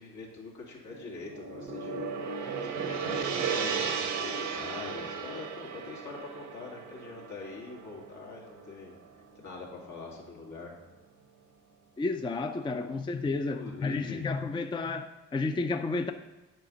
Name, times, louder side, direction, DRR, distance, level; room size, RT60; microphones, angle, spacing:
voice 1, 0.0-9.0 9.4-10.8 12.7-12.9 13.3-14.2 14.6-14.7, left 4 dB, 75° left, -2 dB, 2.2 m, -44 dB
Gong, 0.9-9.2, right 6 dB, 85° right, 1.0 m, -35 dB
voice 2, 12.0-16.1, left 3 dB, 15° left, 7 dB, 0.4 m, -31 dB
7.6 x 5.0 x 5.3 m, 1.2 s
cardioid pair, 90°, 30 cm